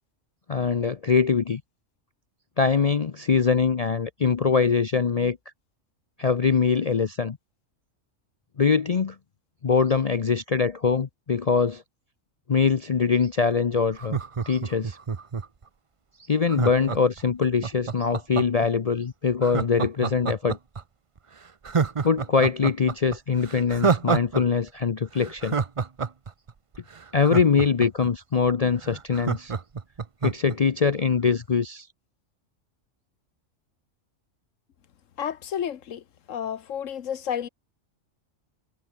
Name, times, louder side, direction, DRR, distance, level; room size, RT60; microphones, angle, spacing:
voice 1, 0.5-1.6 2.6-5.4 6.2-7.4 8.6-9.2 9.6-11.8 12.5-14.2 14.5-15.0 16.3-20.6 22.0-25.6 27.1-29.5 30.2-31.9, left 5 dB, 40° left, 0.6 m, -23 dB
Laughter, 13.9-15.6 16.5-18.7 19.4-20.8 21.2-21.3 21.6-24.4 24.7-24.8 25.2-28.1 28.5-28.6 28.8-30.6 30.9-31.0, right 5 dB, 30° right, 0.7 m, -27 dB
voice 2, 35.2-36.0 36.3-37.5, left 9 dB, 80° left, 1.3 m, -31 dB
omnidirectional pair, 1.3 m